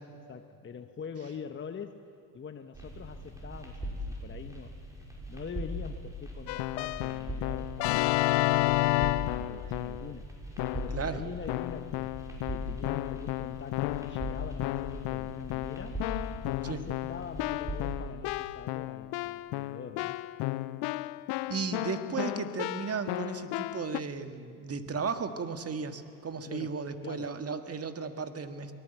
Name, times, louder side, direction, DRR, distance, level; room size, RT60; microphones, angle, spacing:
voice 1, 0.3-2.1 2.3-4.0 4.2-4.7 5.3-10.3 10.7-12.1 12.5-16.0 16.6-20.2 26.5-26.8 27.0-27.4, left 6 dB, 25° left, 8 dB, 1.0 m, -44 dB
sound 1, 2.7-17.9, equal, 5° right, 5.8 m, -40 dB
Keyboard (musical), 6.5-10.1 10.6-11.1 11.5-24.0, left 18 dB, 55° left, 0.7 m, -32 dB
voice 2, 10.9-11.2 16.6-16.8 21.5-28.7, right 5 dB, 30° right, 9 dB, 1.8 m, -35 dB
24.0 x 18.5 x 8.1 m, 2.6 s
hypercardioid pair, 75°, 49 cm